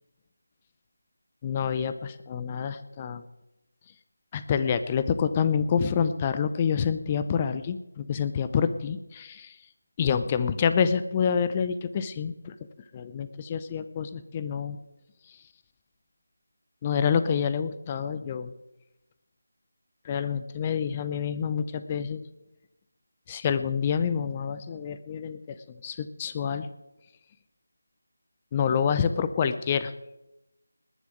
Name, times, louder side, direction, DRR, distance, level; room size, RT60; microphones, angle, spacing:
voice 1, 1.4-3.2 4.3-9.6 10.0-12.5 12.9-14.8 15.3-15.4 16.8-18.5 20.0-22.2 23.3-26.7 28.5-29.9, left 7 dB, 20° left, 12 dB, 0.6 m, -27 dB
20.0 x 7.0 x 7.9 m, 0.94 s
figure-of-eight pair, 165°, 0 cm